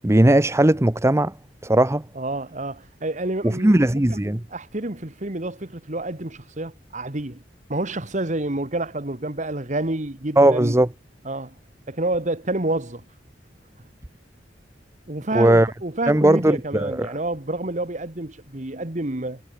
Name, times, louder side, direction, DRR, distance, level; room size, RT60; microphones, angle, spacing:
voice 1, 0.0-1.3 1.6-2.0 3.6-4.4 10.4-10.9 15.3-15.7 16.1-17.1, right 1 dB, 15° right, 0.8 m, -17 dB
voice 2, 2.1-4.2 4.5-7.4 7.7-10.8 11.2-11.6 11.9-13.0 15.1-19.4, right 2 dB, 40° right, 1.8 m, -28 dB
head